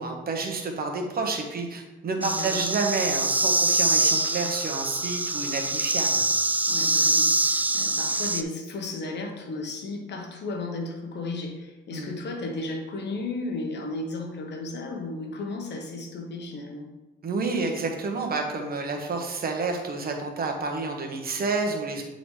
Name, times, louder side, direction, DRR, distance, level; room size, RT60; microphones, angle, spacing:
voice 1, 0.0-6.3 11.9-12.1 17.2-22.0, right 3 dB, 50° right, 2 dB, 1.2 m, -29 dB
voice 2, 2.2-2.6 6.7-16.9, left 2 dB, 60° left, 3 dB, 1.2 m, -34 dB
sound 1, 2.2-8.4, right 2 dB, 10° right, 0.3 m, -24 dB
8.9 x 3.9 x 3.3 m, 1.1 s
cardioid pair, 90°, 20 cm